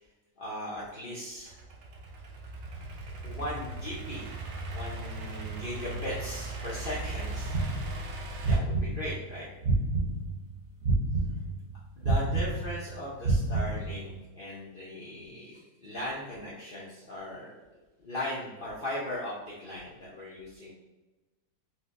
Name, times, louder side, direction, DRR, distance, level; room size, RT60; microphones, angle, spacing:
voice 1, 0.4-1.5 3.2-4.3 4.7-7.6 8.5-9.5 12.0-17.5 18.0-20.7, left 1 dB, 90° left, -7 dB, 0.4 m, -38 dB
Idling / Accelerating revving vroom, 1.4-8.6, right 2 dB, 90° right, 0.6 m, -38 dB
sound 1, 7.5-10.5 10.8-14.2, right 2 dB, 60° right, 0.8 m, -28 dB
4.4 x 2.1 x 2.4 m, 1.2 s
omnidirectional pair, 1.8 m